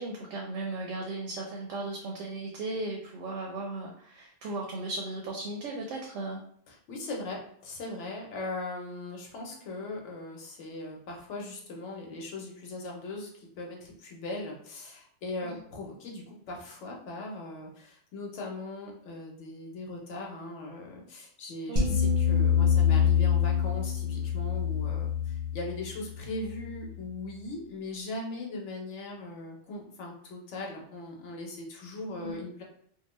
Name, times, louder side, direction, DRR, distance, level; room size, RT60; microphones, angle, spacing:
voice 1, 0.0-6.4 15.4-15.5 21.7-22.0 32.2-32.3, right 2 dB, 90° right, -1 dB, 1.0 m, -36 dB
voice 2, 6.7-32.6, left 2 dB, 70° left, -1 dB, 1.1 m, -39 dB
sound 1, 21.8-27.0, left 7 dB, 45° right, 0.7 m, -26 dB
2.8 x 2.1 x 3.0 m, 0.62 s
omnidirectional pair, 1.3 m